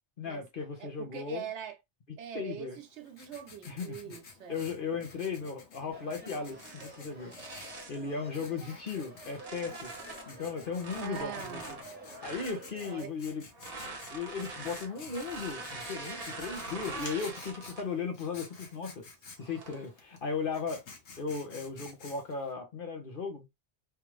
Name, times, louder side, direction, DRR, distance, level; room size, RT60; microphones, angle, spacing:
voice 1, 0.2-1.4 2.3-2.8 3.7-4.1 4.5-9.9 10.3-11.6 12.2-13.5 14.1-19.1 19.4-20.8 21.2-23.5, left 5 dB, 50° left, 1.1 m, -36 dB
voice 2, 0.8-1.8 2.2-4.9 11.0-11.9 12.8-13.1, right 9 dB, 85° right, 1.0 m, -43 dB
Writing, 2.7-22.5, left 4 dB, 80° left, 1.3 m, -52 dB
sound 1, 5.9-13.0, right 1 dB, 10° right, 0.9 m, -50 dB
sound 2, 6.5-8.1 8.7-10.3 10.8-12.6 13.5-18.0 18.4-18.7 19.4-19.9, right 3 dB, 35° right, 1.0 m, -44 dB
3.5 x 2.6 x 3.0 m
omnidirectional pair, 1.1 m